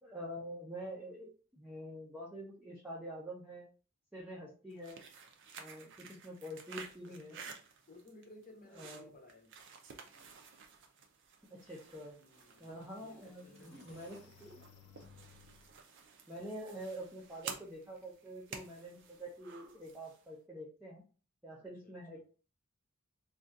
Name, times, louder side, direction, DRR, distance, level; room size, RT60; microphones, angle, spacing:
voice 1, 0.0-3.6 4.1-5.0 5.6-7.4 8.7-9.1 11.5-12.2 12.6-14.6 16.3-21.0 21.4-22.2, equal, 10° right, -4 dB, 0.5 m, -46 dB
sound 1, 4.7-20.3, right 6 dB, 60° right, 0.5 m, -52 dB
voice 2, 7.1-7.6 7.9-9.6 12.2-14.1 21.8-22.2, left 2 dB, 40° left, 2 dB, 0.7 m, -58 dB
sound 2, 12.0-12.1 12.6-15.8, left 7 dB, 80° left, 0.4 m, -61 dB
2.6 x 2.3 x 3.4 m, 0.37 s
head